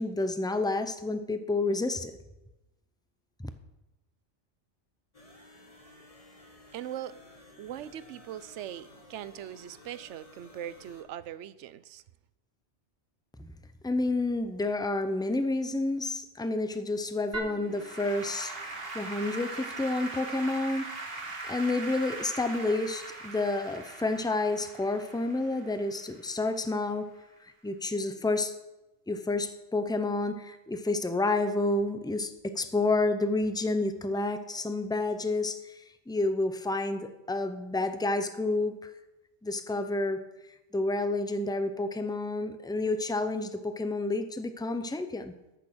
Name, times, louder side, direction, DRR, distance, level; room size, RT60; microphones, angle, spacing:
voice 1, 0.0-2.1 13.4-13.5 13.8-18.5 18.9-27.1 27.4-28.5 29.1-38.9 39.4-40.2 40.7-45.3, left 2 dB, 5° left, 9 dB, 0.5 m, -30 dB
sound 1, 5.1-11.0, left 1 dB, 30° left, 1.4 m, -54 dB
voice 2, 6.7-7.2 7.6-12.0, right 11 dB, 80° right, 16 dB, 0.9 m, -40 dB
Applause / Keyboard (musical), 17.3-26.7, right 3 dB, 55° right, 1.8 m, -40 dB
13.5 x 6.8 x 6.1 m, 0.98 s
omnidirectional pair, 1.2 m